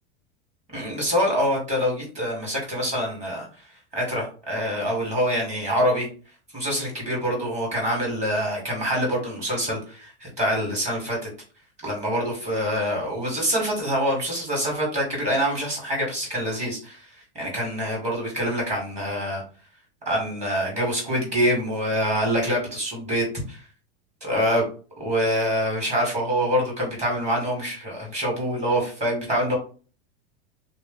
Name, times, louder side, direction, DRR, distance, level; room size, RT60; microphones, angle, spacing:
voice 1, 0.7-3.5 3.9-6.1 6.5-11.2 11.8-17.0 17.4-19.4 20.1-23.6 24.2-24.6 25.0-29.6, equal, 20° right, -1 dB, 1.9 m, -25 dB
3.3 x 3.0 x 3.8 m, 0.38 s
supercardioid pair, 165°, 32 cm